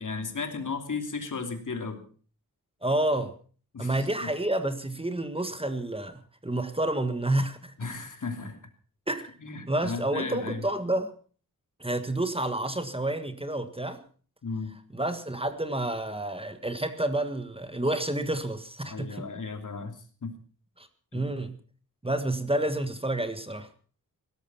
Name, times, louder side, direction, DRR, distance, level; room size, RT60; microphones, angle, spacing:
voice 1, 0.0-2.0 3.7-4.3 7.8-8.6 9.4-10.6 14.4-14.8 18.9-20.3 21.1-21.3, left 4 dB, 60° left, 6 dB, 3.0 m, -35 dB
voice 2, 2.8-3.3 3.8-7.7 9.1-9.3 9.7-11.1 11.8-14.0 14.9-19.3 20.8-20.9 21.1-21.6 22.0-23.7, right 1 dB, 15° right, 9 dB, 1.5 m, -29 dB
17.0 x 13.0 x 5.7 m, 0.42 s
wide cardioid pair, 90°, 35 cm